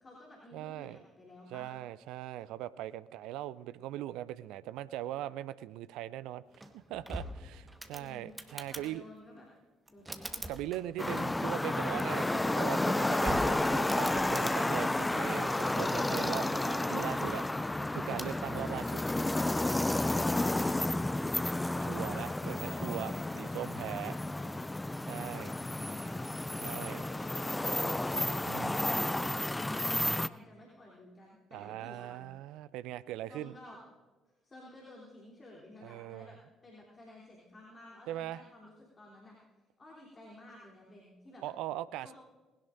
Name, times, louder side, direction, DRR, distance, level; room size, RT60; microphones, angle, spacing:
voice 1, 0.0-1.7 7.9-8.4 8.7-9.5 9.9-10.5 20.8-22.1 22.4-23.4 24.0-24.6 25.3-27.9 28.3-28.7 29.4-32.2 33.3-33.8 34.3-36.4 36.6-39.4 39.8-41.4 42.0-42.1, left 1 dB, 30° left, -4 dB, 3.3 m, -53 dB
voice 2, 0.5-1.0 1.5-9.0 10.5-17.4 17.9-19.0 21.9-24.2 25.0-25.5 26.6-27.0 28.5-28.8 31.5-33.5 35.8-36.4 38.1-38.4 41.4-42.1, right 13 dB, 65° right, 17 dB, 0.3 m, -40 dB
sound 1, 6.5-8.9 9.9-11.6 12.6-14.6 15.9-16.4 18.1-18.4, right 1 dB, 15° right, 1.3 m, -43 dB
sound 2, 11.0-30.3, left 2 dB, 15° left, 0.4 m, -31 dB
20.0 x 17.0 x 2.6 m, 1.2 s
figure-of-eight pair, 45°, 0 cm